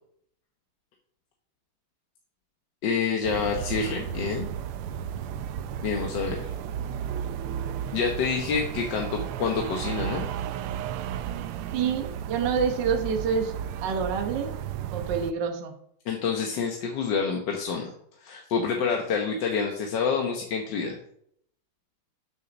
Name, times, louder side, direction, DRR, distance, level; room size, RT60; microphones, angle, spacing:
voice 1, 2.8-4.5 5.8-6.5 7.9-10.3 16.1-17.9 18.2-21.0, left 5 dB, 60° left, 2 dB, 1.5 m, -27 dB
sound 1, 3.2-15.3, right 9 dB, 85° right, 1.5 m, -33 dB
voice 2, 11.7-13.5 13.8-14.5 14.9-15.7, right 6 dB, 60° right, 5 dB, 1.6 m, -27 dB
8.1 x 6.4 x 6.0 m, 0.69 s
omnidirectional pair, 2.4 m